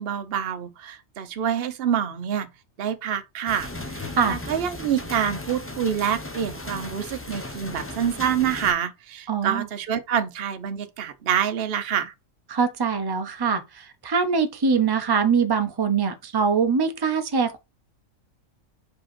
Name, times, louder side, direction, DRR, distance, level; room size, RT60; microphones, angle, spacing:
voice 1, 0.0-2.5 2.8-12.1, right 8 dB, 55° right, 0.9 m, -27 dB
sound 1, 3.5-8.7, left 2 dB, 10° left, 0.7 m, -36 dB
voice 2, 9.3-9.7 12.5-17.6, right 5 dB, 25° right, 0.6 m, -23 dB
5.2 x 4.9 x 4.3 m
omnidirectional pair, 1.4 m